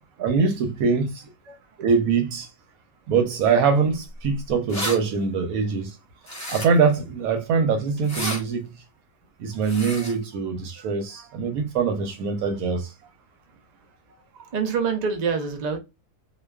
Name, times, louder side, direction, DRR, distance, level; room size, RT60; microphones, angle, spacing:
voice 1, 0.2-1.2 1.8-2.5 3.1-5.9 6.5-8.7 9.4-12.9, right 5 dB, 85° right, 1.1 m, -23 dB
sound 1, 4.2-4.3 4.5-5.0 6.3-6.9 8.0-8.4 9.6-10.1, equal, 20° left, 0.4 m, -31 dB
voice 2, 10.8-11.3 14.1-15.8, right 6 dB, 65° right, 0.4 m, -28 dB
2.4 x 2.3 x 2.2 m
omnidirectional pair, 1.5 m